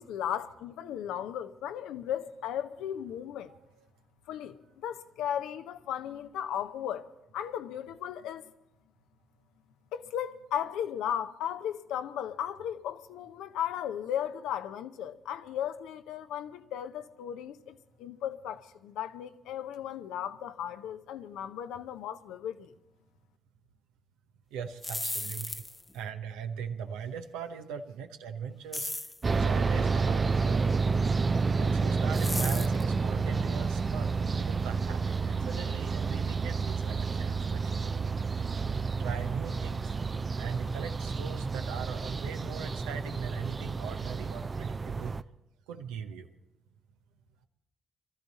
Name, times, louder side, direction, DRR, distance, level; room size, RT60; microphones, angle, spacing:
voice 1, 0.0-3.5 4.3-7.1 7.3-8.5 9.9-22.7, left 10 dB, 80° left, 0.6 m, -36 dB
voice 2, 24.5-25.6 25.9-28.9 29.3-30.9 31.6-38.0 39.0-39.9 40.3-45.1 45.7-46.3, right 7 dB, 85° right, 0.8 m, -40 dB
sound 1, 24.7-25.9 28.7-29.2 32.1-32.8, left 2 dB, 20° left, 0.7 m, -35 dB
sound 2, 29.2-45.2, right 4 dB, 40° right, 0.5 m, -30 dB
23.0 x 13.5 x 4.1 m
hypercardioid pair, 45°, 0 cm